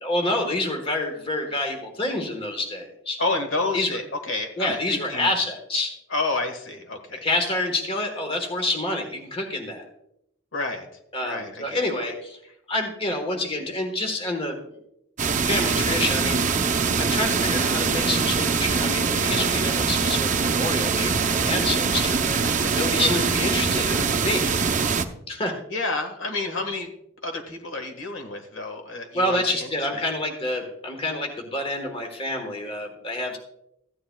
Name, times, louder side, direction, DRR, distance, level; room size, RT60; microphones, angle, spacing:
voice 1, 0.0-3.2 3.7-4.0 4.6-5.9 7.2-9.8 11.1-12.4 12.7-14.6 15.4-16.4 17.0-24.6 25.3-25.6 29.1-33.4, left 2 dB, 25° left, 4 dB, 1.3 m, -27 dB
voice 2, 3.2-5.3 6.1-7.2 10.5-10.9 11.2-11.9 22.4-23.2 25.7-26.9 27.2-29.7 29.9-30.1, left 2 dB, 65° left, 5 dB, 1.5 m, -30 dB
sound 1, 15.2-25.0, right 5 dB, 35° right, 0.6 m, -23 dB
15.0 x 9.7 x 2.3 m, 0.79 s
head